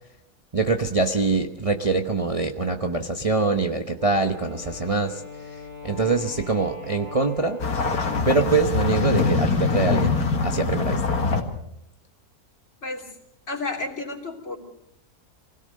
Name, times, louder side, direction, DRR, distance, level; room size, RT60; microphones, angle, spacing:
voice 1, 0.5-5.2 5.5-5.6 5.8-7.6 8.2-10.2 10.4-11.0, right 3 dB, 30° right, 5 dB, 0.9 m, -24 dB
Wind instrument woodwind instrument, 3.9-8.3, left 4 dB, 50° right, 6.2 m, -41 dB
sound 1, 7.6-11.4, left 4 dB, 80° left, 2.3 m, -23 dB
voice 2, 13.5-14.6, left 3 dB, 50° left, 1 dB, 3.4 m, -31 dB
24.0 x 17.0 x 6.5 m, 0.81 s
omnidirectional pair, 1.6 m